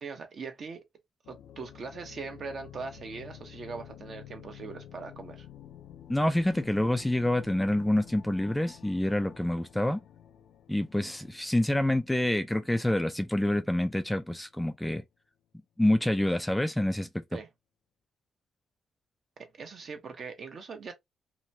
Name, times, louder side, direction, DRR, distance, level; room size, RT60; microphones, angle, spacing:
voice 1, 0.0-0.8 1.3-5.5 17.3-17.5 19.4-20.9, right 5 dB, 50° right, 0.9 m, -41 dB
sound 1, 1.2-14.0, left 11 dB, 80° left, 0.4 m, -50 dB
voice 2, 6.1-10.0 10.7-15.0 15.8-17.1, left 1 dB, 5° left, 0.3 m, -27 dB
2.9 x 2.2 x 2.7 m
cardioid pair, 90°, 0 cm